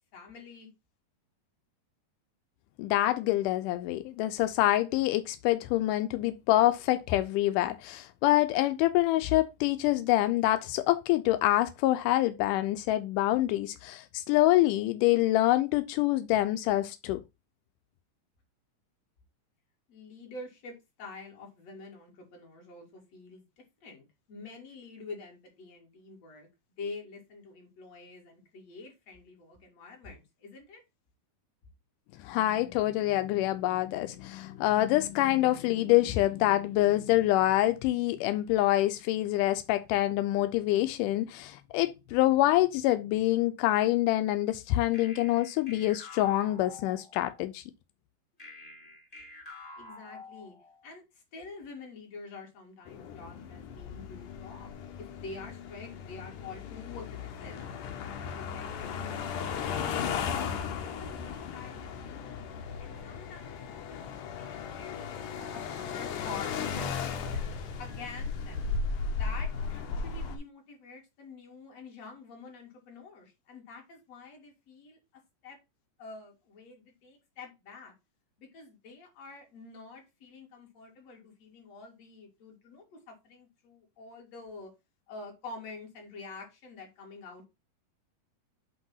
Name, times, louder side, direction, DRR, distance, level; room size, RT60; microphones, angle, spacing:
voice 1, 0.1-0.7 19.9-26.5 26.8-30.8 49.8-50.6 50.8-57.6 57.9-62.4 62.8-67.4 67.8-68.6 69.1-75.6 76.0-77.9 78.4-84.7 85.1-87.5, left 3 dB, 50° left, 2.9 m, -47 dB
voice 2, 2.8-17.2 32.2-47.6, left 15 dB, 85° left, 1.8 m, -26 dB
sound 1, 44.9-47.4 48.4-50.9, left 2 dB, 25° left, 0.8 m, -48 dB
sound 2, 52.9-70.4, left 6 dB, 70° left, 2.2 m, -36 dB
8.1 x 3.0 x 5.5 m
omnidirectional pair, 4.3 m